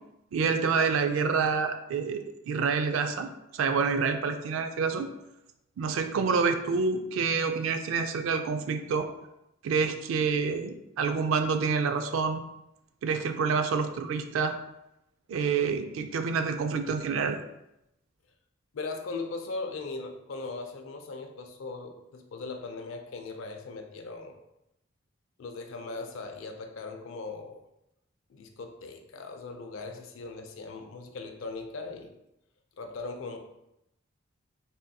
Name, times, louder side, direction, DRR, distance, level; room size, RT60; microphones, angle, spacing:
voice 1, 0.3-5.1 5.8-9.1 9.6-12.4 13.0-14.6 15.3-17.4, right 5 dB, 90° right, 8 dB, 0.3 m, -27 dB
voice 2, 18.7-24.4 25.4-27.6 28.3-32.1 32.8-33.4, left 3 dB, 80° left, 5 dB, 0.4 m, -39 dB
3.4 x 2.7 x 2.2 m, 0.87 s
head